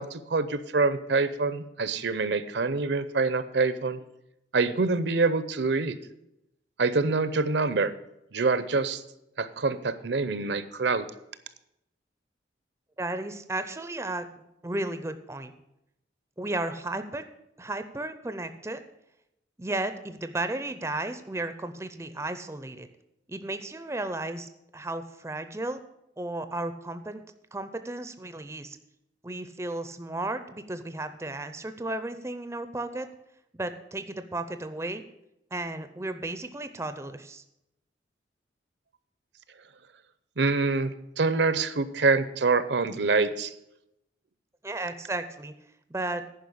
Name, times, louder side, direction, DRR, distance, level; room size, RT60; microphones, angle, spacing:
voice 1, 0.0-4.0 4.5-6.0 6.8-7.9 8.3-9.0 9.4-11.0 40.4-43.5, right 3 dB, 70° right, 14 dB, 0.7 m, -25 dB
voice 2, 13.0-15.5 16.4-17.2 17.6-18.8 19.6-22.9 23.3-25.8 26.2-27.2 27.5-28.8 29.2-33.1 33.5-35.0 35.5-37.4 44.6-45.5 45.9-46.2, right 2 dB, 15° right, 10 dB, 0.5 m, -34 dB
10.5 x 5.3 x 8.4 m, 0.83 s
head